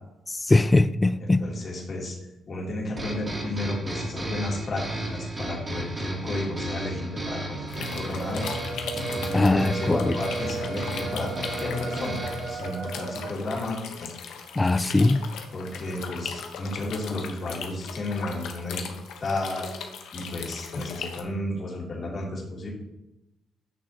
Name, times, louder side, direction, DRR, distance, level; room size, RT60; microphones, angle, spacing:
voice 1, 0.5-1.4 9.3-10.2 14.6-15.2, left 2 dB, 20° left, 14 dB, 0.4 m, -20 dB
voice 2, 1.2-2.1 2.5-8.4 8.9-12.2 12.5-14.1 15.5-18.9 19.2-19.6 20.1-22.7, left 2 dB, 40° left, -4 dB, 2.6 m, -32 dB
sound 1, 3.0-12.6, right 1 dB, 25° right, 2.7 m, -34 dB
sound 2, 7.7-21.2, left 6 dB, 80° left, 1.0 m, -39 dB
sound 3, 8.1-13.4, right 4 dB, 60° right, 1.2 m, -35 dB
9.7 x 6.3 x 2.9 m, 0.91 s
cardioid pair, 90°, 0 cm